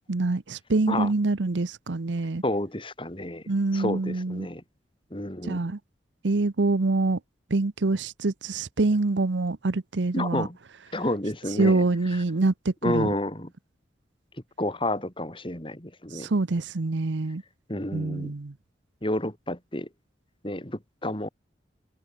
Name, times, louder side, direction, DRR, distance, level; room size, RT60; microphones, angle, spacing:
voice 1, 0.1-2.4 3.5-4.5 5.5-5.8 6.2-7.2 7.5-10.5 11.6-13.1 16.1-17.4 17.9-18.5, right 3 dB, 90° right, 0.8 m, -25 dB
voice 2, 2.4-3.4 3.7-4.6 5.1-5.6 10.1-10.6 10.9-11.9 12.1-12.2 12.8-13.5 14.6-16.3 17.7-18.4 19.0-19.9 20.4-21.3, left 1 dB, 30° left, 5.1 m, -30 dB
head